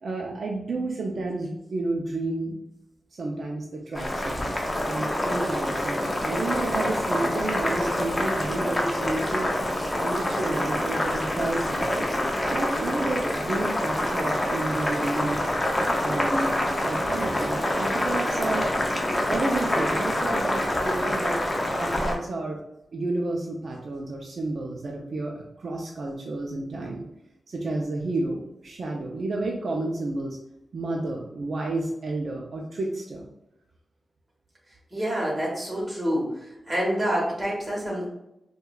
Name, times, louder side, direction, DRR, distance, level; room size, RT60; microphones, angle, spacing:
voice 1, 0.0-2.6 3.1-4.5 4.8-9.5 10.0-12.1 12.5-15.4 16.0-18.7 19.3-21.4 21.7-22.6 22.9-27.0 27.5-30.4 30.7-33.3, right 2 dB, 60° right, -1 dB, 0.4 m, -31 dB
Boiling, 3.9-22.2, left 1 dB, 15° left, 0.5 m, -26 dB
voice 2, 34.9-38.1, equal, 20° right, -4 dB, 1.0 m, -27 dB
4.6 x 2.2 x 2.2 m, 0.86 s
wide cardioid pair, 165°, 0 cm